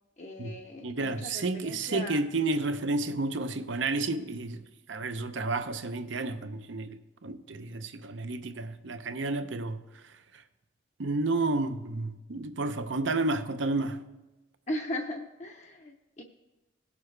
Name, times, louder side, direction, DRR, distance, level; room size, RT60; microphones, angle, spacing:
voice 1, 0.2-2.2 14.7-16.2, left 1 dB, 35° left, 0.6 m, -38 dB
voice 2, 0.8-4.6 4.9-10.4 11.0-14.0, right 2 dB, 75° right, 0.7 m, -31 dB
18.0 x 7.0 x 3.2 m
head